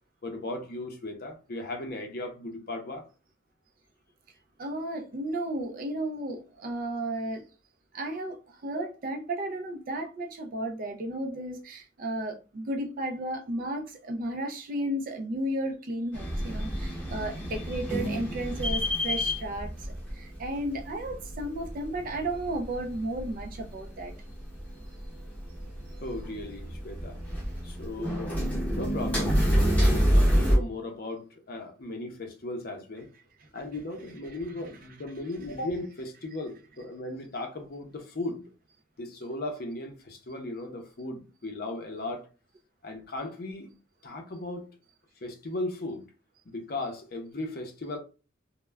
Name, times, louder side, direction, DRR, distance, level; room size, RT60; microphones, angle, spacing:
voice 1, 0.2-3.1 8.8-8.9 26.0-27.2 27.6-28.4 28.7-33.1 33.5-38.5 39.0-42.3 42.8-43.7 44.0-44.7 45.2-46.0 46.5-48.0, left 2 dB, 50° left, 0.5 m, -36 dB
voice 2, 4.6-7.5 7.9-24.1, right 1 dB, 45° right, 0.4 m, -33 dB
sound 1, 16.1-30.6, equal, 10° left, 0.7 m, -29 dB
2.2 x 2.0 x 3.2 m
head